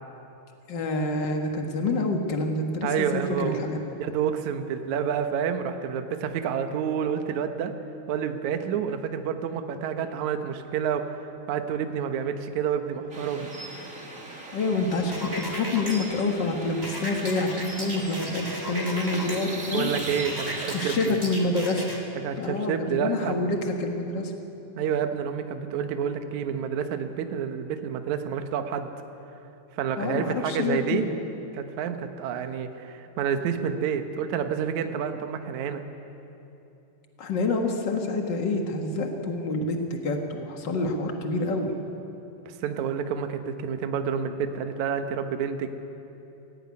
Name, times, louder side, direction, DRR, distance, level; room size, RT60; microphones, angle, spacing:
voice 1, 0.7-3.8 14.5-19.9 20.7-21.9 22.4-24.3 30.0-31.1 37.2-41.7, left 2 dB, 90° left, 3 dB, 0.9 m, -27 dB
voice 2, 2.8-3.6 4.0-7.7 8.1-11.2 11.5-13.5 19.7-21.2 22.2-23.4 24.8-28.9 29.7-31.0 31.5-35.8 42.4-45.7, right 7 dB, 65° right, 7 dB, 2.0 m, -29 dB
sound 1, 13.1-21.0, right 2 dB, 25° right, 2.0 m, -39 dB
sound 2, 15.1-15.9 16.8-19.4 20.2-22.0, equal, 5° right, 2.3 m, -35 dB
24.0 x 16.5 x 9.7 m, 2.9 s
omnidirectional pair, 4.7 m